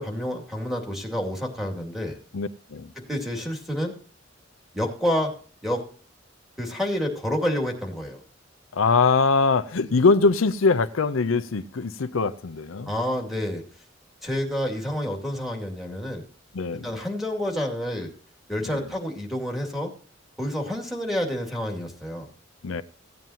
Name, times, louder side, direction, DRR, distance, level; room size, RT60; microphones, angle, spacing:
voice 1, 0.0-2.2 3.0-3.9 4.7-5.3 5.6-5.8 6.6-8.2 12.9-13.6 14.2-16.2 16.8-18.1 18.5-19.9 20.4-22.3, equal, ahead, 2.4 m, -28 dB
voice 2, 2.3-2.9 8.7-12.9 16.5-16.9 18.7-18.9 22.6-22.8, left 4 dB, 85° left, 0.6 m, -22 dB
16.5 x 9.2 x 2.8 m
head